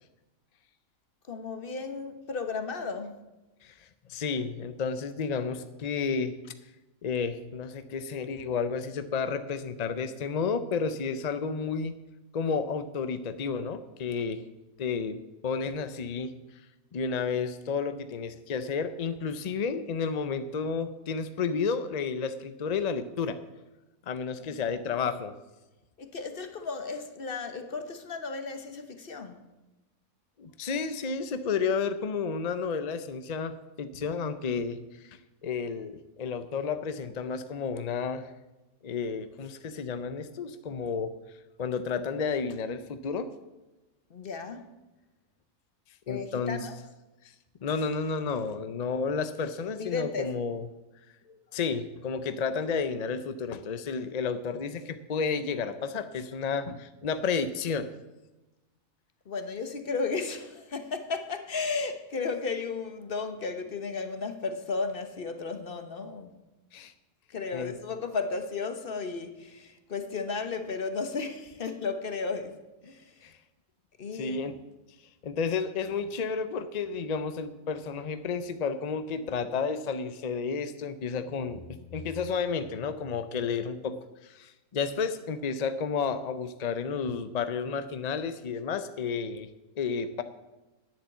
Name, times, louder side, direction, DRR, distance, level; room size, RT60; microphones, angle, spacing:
voice 1, 1.2-3.2 24.4-24.6 26.0-29.4 44.1-44.7 46.1-46.8 49.8-50.3 59.2-66.3 67.3-73.3 74.0-74.4, left 4 dB, 45° left, 1.1 m, -34 dB
voice 2, 3.6-6.4 7.0-12.0 12.3-14.4 14.8-15.2 15.4-16.3 16.9-23.4 24.1-25.3 30.4-38.3 38.8-41.1 41.6-43.3 46.1-46.6 47.6-50.6 51.3-57.9 66.7-66.9 67.5-67.7 73.2-73.4 74.1-74.5 75.2-89.5 89.8-90.2, left 5 dB, 60° left, 0.4 m, -31 dB
10.0 x 7.5 x 8.0 m
omnidirectional pair, 1.5 m